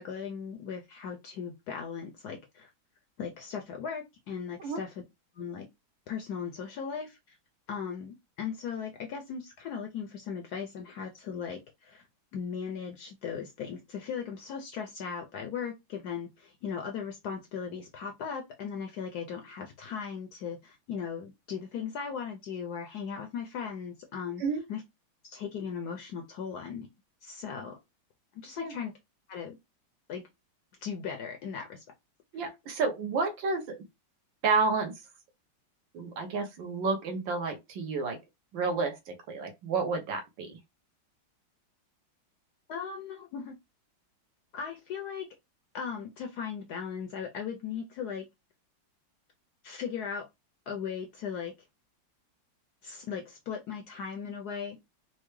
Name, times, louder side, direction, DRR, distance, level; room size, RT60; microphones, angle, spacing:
voice 1, 0.0-2.7 3.2-4.9 5.4-5.7 6.1-7.4 7.7-12.1 12.3-24.4 24.7-24.8 25.2-26.9 27.2-27.7 28.3-28.9 29.3-29.6 30.1-30.2 30.8-31.8 42.7-43.5 44.5-45.3 45.7-48.2 49.6-50.2 50.7-51.5 52.8-54.8, left 7 dB, 70° left, 0.9 m, -38 dB
voice 2, 32.3-33.8 34.4-34.9 35.9-38.2 38.5-40.6, right 4 dB, 70° right, 1.6 m, -30 dB
4.3 x 2.1 x 3.0 m
omnidirectional pair, 2.2 m